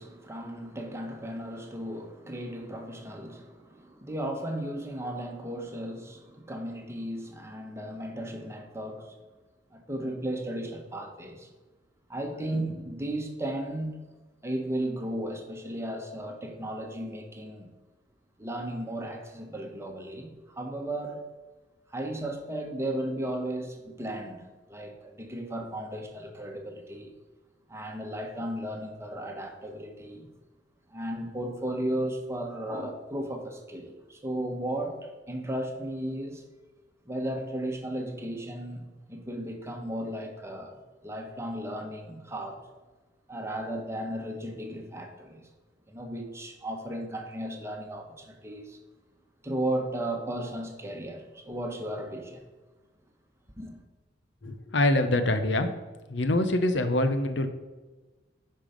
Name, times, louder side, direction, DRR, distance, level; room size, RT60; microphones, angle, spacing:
voice 1, 0.0-9.1 9.7-11.5 12.1-14.0 14.4-17.7 18.4-21.2 21.9-24.4 24.7-27.1 27.7-30.3 30.9-36.4 37.0-42.6 43.3-45.4 45.9-48.8 49.4-52.4 53.6-53.7, right 1 dB, 15° right, 3 dB, 1.3 m, -35 dB
voice 2, 54.4-55.7 56.1-57.5, left 1 dB, 70° left, 8 dB, 0.8 m, -25 dB
10.0 x 5.6 x 5.2 m, 1.2 s
head